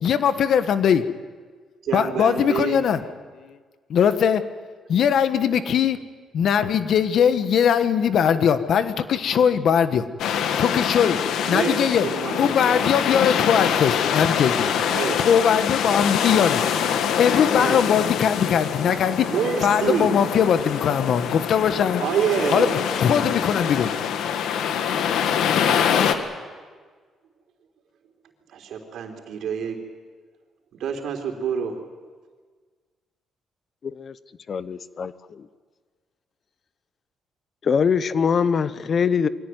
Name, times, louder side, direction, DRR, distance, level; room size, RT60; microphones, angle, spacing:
voice 1, 0.0-1.0 1.9-3.6 3.9-4.4 4.9-6.0 6.3-10.1 10.6-11.2 11.5-12.1 12.3-14.7 15.2-16.6 17.2-19.3 19.6-22.1 22.5-24.1, left 8 dB, 65° left, 11 dB, 1.4 m, -20 dB
voice 2, 1.8-2.8 11.5-12.9 14.9-15.2 15.8-15.9 17.5-17.8 19.3-20.1 22.0-22.7 28.5-29.8 30.8-31.8, right 7 dB, 75° right, 4 dB, 3.8 m, -27 dB
sound 1, 10.2-26.1, left 8 dB, 80° left, 1.8 m, -25 dB
voice 3, 34.5-35.4 37.6-39.3, left 6 dB, 50° left, 15 dB, 0.9 m, -23 dB
23.5 x 17.5 x 9.3 m, 1.5 s
cardioid pair, 90°, 0 cm